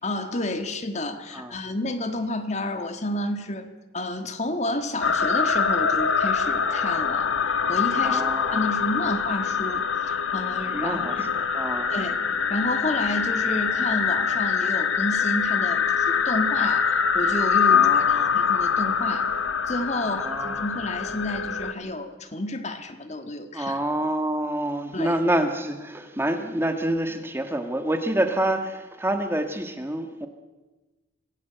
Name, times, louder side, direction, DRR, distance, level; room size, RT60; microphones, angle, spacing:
voice 1, 0.0-8.2 8.5-11.1 11.9-12.2 12.5-19.4 19.7-23.8 24.9-25.2, left 1 dB, 35° left, 8 dB, 1.7 m, -30 dB
sound 1, 5.0-21.7, left 6 dB, 85° left, 1.4 m, -24 dB
voice 2, 8.0-8.6 10.7-11.9 17.7-18.4 20.1-20.7 23.5-30.3, right 1 dB, 10° right, 7 dB, 1.5 m, -27 dB
26.0 x 17.0 x 7.9 m, 1.2 s
head